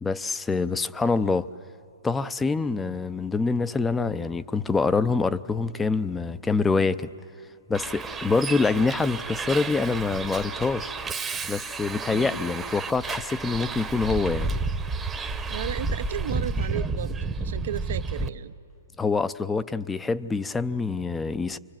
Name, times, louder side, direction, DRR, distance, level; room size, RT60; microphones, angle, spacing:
voice 1, 0.0-1.5 2.0-7.1 7.7-10.9 11.5-14.5 19.0-21.6, left 4 dB, 10° left, 15 dB, 0.6 m, -25 dB
Bus, 7.7-18.3, right 3 dB, 15° right, 1.0 m, -31 dB
voice 2, 12.1-12.4 15.5-18.5, right 10 dB, 65° right, 11 dB, 0.8 m, -35 dB
26.0 x 23.5 x 9.0 m, 2.4 s
hypercardioid pair, 135°, 0 cm